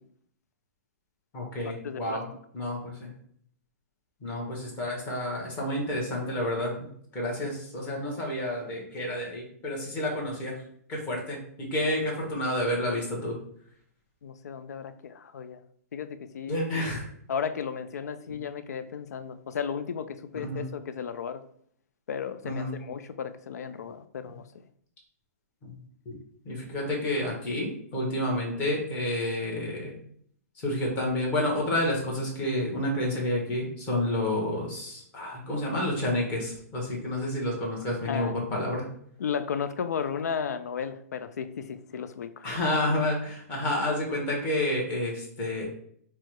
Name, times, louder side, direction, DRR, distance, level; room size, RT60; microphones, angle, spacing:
voice 1, 1.3-2.3 2.5-3.1 4.2-6.7 7.1-10.6 10.9-13.4 16.5-17.1 18.3-18.4 20.4-20.7 22.4-22.7 25.6-25.8 26.1-26.2 26.4-30.0 30.6-38.9 42.4-45.7, left 1 dB, 15° left, -3 dB, 0.9 m, -30 dB
voice 2, 1.8-2.3 14.2-15.6 15.9-16.8 17.3-21.4 22.1-24.4 38.1-38.4 39.2-42.5, left 7 dB, 80° left, 11 dB, 0.4 m, -34 dB
4.6 x 2.0 x 4.5 m, 0.64 s
hypercardioid pair, 180°, 9 cm